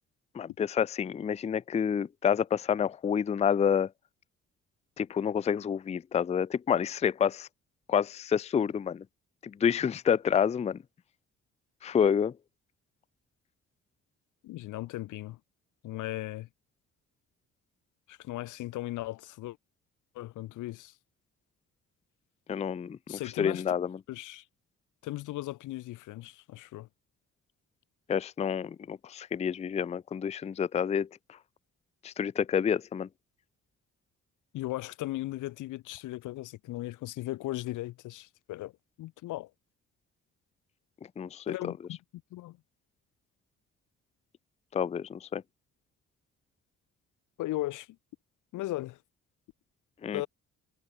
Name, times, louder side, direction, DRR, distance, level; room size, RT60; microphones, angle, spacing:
voice 1, 0.3-3.9 5.0-7.5 7.9-9.0 9.4-10.8 11.8-12.3 22.5-24.0 28.1-31.1 32.0-33.1 41.2-41.5 44.7-45.4 50.0-50.2, left 7 dB, 20° left, 0.4 m, -28 dB
voice 2, 14.4-15.4 15.8-16.5 18.1-19.6 20.1-20.9 23.1-23.6 24.1-24.4 25.0-26.9 34.5-38.7 39.0-39.5 41.5-42.0 42.3-42.6 47.4-47.9 48.5-49.0 50.1-50.3, left 17 dB, 85° left, 0.9 m, -37 dB
cardioid pair, 90°, 30 cm